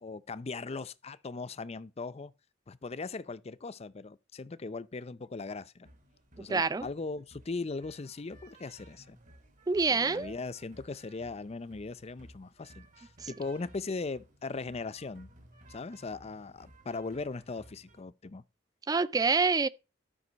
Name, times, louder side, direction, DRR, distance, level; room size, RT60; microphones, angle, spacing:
voice 1, 0.0-2.3 2.7-5.9 6.4-9.2 9.9-15.3 15.7-18.4, left 3 dB, 35° left, 0.5 m, -39 dB
sound 1, 5.8-18.0, right 1 dB, 45° right, 2.3 m, -58 dB
voice 2, 6.5-6.9 9.7-10.3 13.2-13.3 18.9-19.7, right 4 dB, 20° right, 0.4 m, -26 dB
12.5 x 5.3 x 5.1 m
head